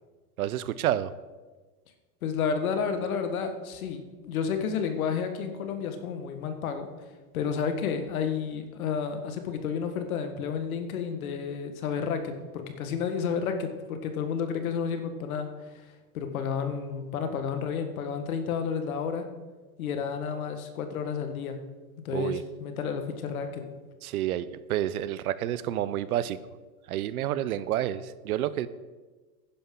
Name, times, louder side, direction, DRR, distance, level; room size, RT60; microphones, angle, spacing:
voice 1, 0.4-1.1 22.1-22.4 24.0-26.4 26.9-28.7, right 12 dB, 65° right, 16 dB, 0.7 m, -29 dB
voice 2, 2.2-6.9 7.3-15.5 16.1-19.3 19.8-21.6 22.0-23.6, left 6 dB, 60° left, 7 dB, 1.5 m, -31 dB
11.5 x 10.0 x 3.8 m, 1.3 s
supercardioid pair, 175°, 47 cm